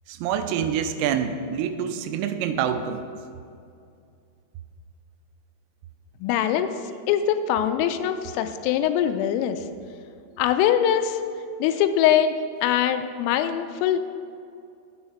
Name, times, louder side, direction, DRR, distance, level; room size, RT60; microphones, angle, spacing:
voice 1, 0.1-3.0, right 8 dB, 90° right, 9 dB, 3.2 m, -26 dB
voice 2, 6.2-6.7 7.1-9.6 10.4-11.2 11.6-12.4 12.6-14.0, left 10 dB, 90° left, 8 dB, 3.2 m, -22 dB
9.4 x 8.8 x 4.2 m, 2.4 s
omnidirectional pair, 5.7 m